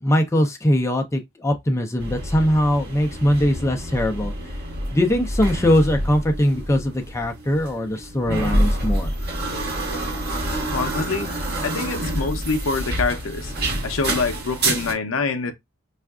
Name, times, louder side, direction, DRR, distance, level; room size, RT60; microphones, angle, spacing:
voice 1, 0.0-4.3 4.9-9.1, equal, 15° left, 0.4 m, -21 dB
sound 1, 2.0-14.9, right 1 dB, 50° right, 1.3 m, -27 dB
voice 2, 10.7-11.3 11.6-13.5 13.8-15.5, left 4 dB, 65° left, 0.5 m, -25 dB
4.5 x 2.4 x 2.3 m
head